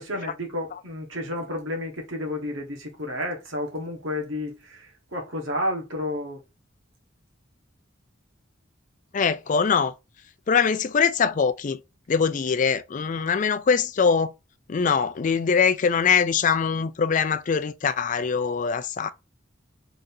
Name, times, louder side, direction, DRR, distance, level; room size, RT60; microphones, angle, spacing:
voice 1, 0.0-6.4, left 1 dB, 80° right, 1.5 m, -31 dB
voice 2, 9.1-9.9 10.5-11.8 12.1-14.3 14.7-19.1, left 6 dB, 40° left, 0.4 m, -22 dB
3.8 x 2.8 x 3.8 m
head